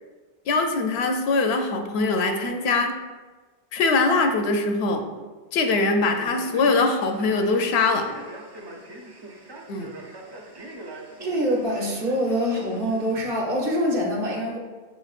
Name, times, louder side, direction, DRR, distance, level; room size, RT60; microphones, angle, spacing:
voice 1, 0.5-2.9 3.7-5.0 5.5-8.1 9.7-9.9, left 3 dB, 85° left, 5 dB, 0.8 m, -22 dB
Male speech man speaking, 6.1-13.4, right 2 dB, 40° right, 0.4 m, -42 dB
voice 2, 11.2-14.6, equal, 65° right, -2 dB, 1.1 m, -25 dB
6.5 x 3.1 x 2.4 m, 1.3 s
omnidirectional pair, 1.0 m